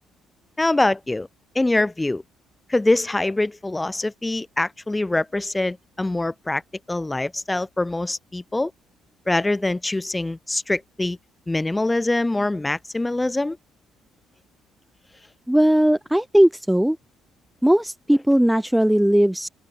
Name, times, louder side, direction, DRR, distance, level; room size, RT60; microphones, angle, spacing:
voice 1, 0.6-1.3 1.5-2.2 2.7-6.6 6.9-8.7 9.3-11.2 11.5-13.6, left 2 dB, 15° left, 1.6 m, -24 dB
voice 2, 15.5-17.0 17.6-19.5, right 1 dB, 5° right, 1.2 m, -18 dB
open air
supercardioid pair, 75°, 0 cm